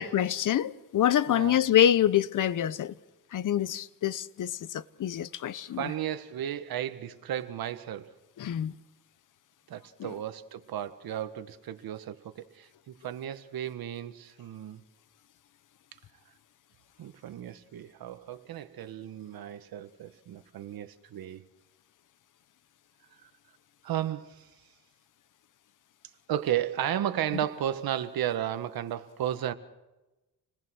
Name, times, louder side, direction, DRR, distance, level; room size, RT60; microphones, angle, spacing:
voice 1, 0.0-2.9 3.3-5.9 8.4-8.7 10.0-10.1, left 10 dB, 55° left, 1.0 m, -26 dB
voice 2, 1.3-1.6 5.4-8.1 9.7-14.8 17.0-21.4 23.2-23.3 23.8-24.5 26.3-29.5, right 11 dB, 75° right, 1.6 m, -34 dB
28.5 x 20.0 x 6.4 m
cardioid pair, 110°, 36 cm